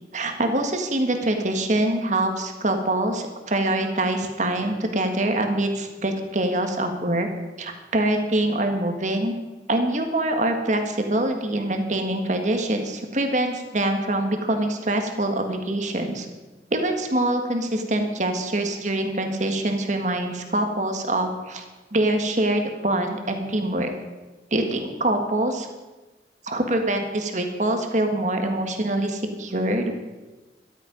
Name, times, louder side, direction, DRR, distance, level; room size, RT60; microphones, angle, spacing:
voice 1, 0.1-7.3 7.6-9.3 9.7-16.3 16.7-21.6 21.9-23.9 24.5-25.7 26.4-29.9, right 1 dB, 45° right, 5 dB, 1.7 m, -24 dB
13.5 x 12.0 x 5.2 m, 1.2 s
head